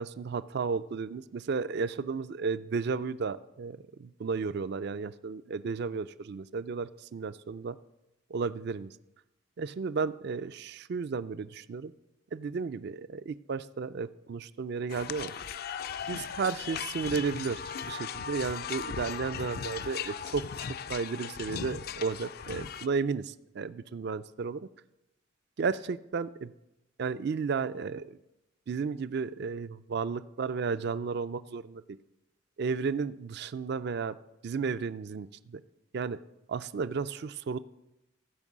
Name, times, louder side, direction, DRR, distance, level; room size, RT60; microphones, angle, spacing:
voice 1, 0.0-7.8 8.3-8.9 9.6-11.9 12.3-15.3 16.1-17.6 17.9-20.4 20.9-24.7 25.6-26.5 27.0-28.2 28.7-31.8 32.6-34.1 34.4-35.6 35.9-36.2 36.5-37.6, right 5 dB, 55° right, 15 dB, 0.4 m, -33 dB
sound 1, 14.9-22.9, left 7 dB, 50° left, 0.4 m, -38 dB
14.5 x 5.3 x 7.3 m, 0.93 s
head